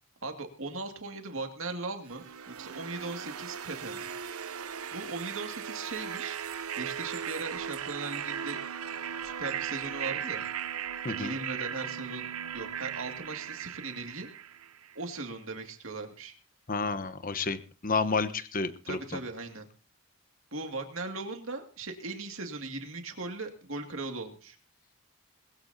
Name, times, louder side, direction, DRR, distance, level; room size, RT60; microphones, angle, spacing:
voice 1, 0.2-4.1 4.9-6.4 6.8-8.6 9.2-10.4 11.1-12.3 12.5-14.3 15.0-16.3 18.8-19.7 20.5-24.6, right 3 dB, 65° right, 4 dB, 2.3 m, -38 dB
sound 1, 2.1-15.0, right 8 dB, 85° right, 0.8 m, -37 dB
voice 2, 16.7-19.2, left 4 dB, 40° left, 13 dB, 1.1 m, -31 dB
21.0 x 15.5 x 2.8 m, 0.35 s
head